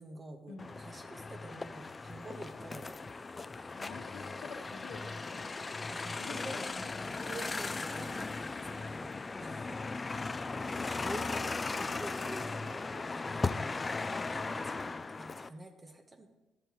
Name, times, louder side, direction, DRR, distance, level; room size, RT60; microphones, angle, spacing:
voice 1, 0.0-3.0 5.9-6.6 7.0-9.1 9.4-9.8 10.2-10.6 10.8-13.8 14.3-16.3, right 1 dB, 25° right, 5 dB, 1.3 m, -48 dB
sound 1, 0.6-15.5, left 3 dB, 25° left, 0.4 m, -37 dB
voice 2, 3.8-5.6 6.2-6.9, left 4 dB, 80° left, 3 dB, 1.4 m, -48 dB
13.0 x 7.8 x 3.1 m, 1.1 s
cardioid pair, 90°, 0 cm